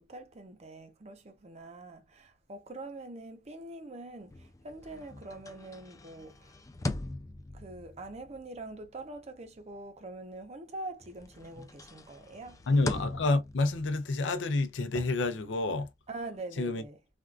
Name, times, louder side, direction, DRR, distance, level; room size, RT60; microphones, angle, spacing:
voice 1, 0.0-6.6 7.5-12.6 16.1-17.0, right 2 dB, 35° right, 0.6 m, -44 dB
sound 1, 4.2-10.7 11.0-16.4, left 2 dB, 20° left, 0.3 m, -42 dB
voice 2, 12.7-15.9 16.6-16.8, left 2 dB, 85° left, 0.5 m, -28 dB
3.4 x 2.3 x 2.4 m
head